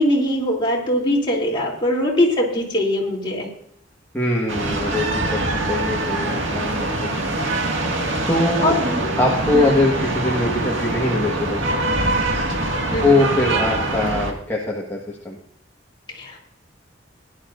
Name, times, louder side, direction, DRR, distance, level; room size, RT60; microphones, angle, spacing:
voice 1, 0.0-3.5 8.6-9.1 9.5-9.9 12.9-13.2 16.1-16.4, left 1 dB, 25° left, -3 dB, 3.1 m, -21 dB
voice 2, 4.1-7.6 8.3-8.8 9.2-11.9 13.0-15.4, left 2 dB, 10° left, -5 dB, 1.5 m, -22 dB
sound 1, 4.5-14.3, right 2 dB, 80° right, 2.0 m, -24 dB
18.5 x 11.0 x 2.6 m, 0.68 s
head